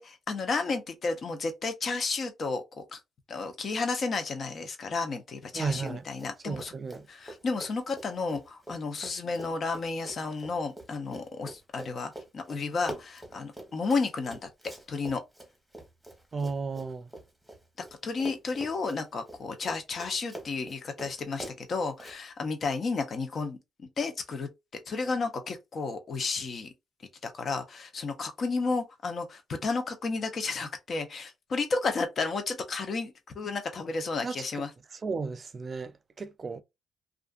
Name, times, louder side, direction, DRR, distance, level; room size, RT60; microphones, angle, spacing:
voice 1, 0.0-3.0 3.3-6.7 7.1-14.5 14.9-15.2 18.0-23.6 24.0-24.5 24.9-26.7 27.2-34.7, left 4 dB, 50° left, 0.7 m, -32 dB
voice 2, 5.5-6.1 6.4-7.1 16.3-17.1 34.2-34.4 34.9-36.6, right 4 dB, 40° right, 0.3 m, -34 dB
Run, 5.8-6.3 6.6-17.9 18.2-22.2, right 1 dB, 5° right, 1.0 m, -45 dB
2.5 x 2.4 x 2.3 m
cardioid pair, 90°, 0 cm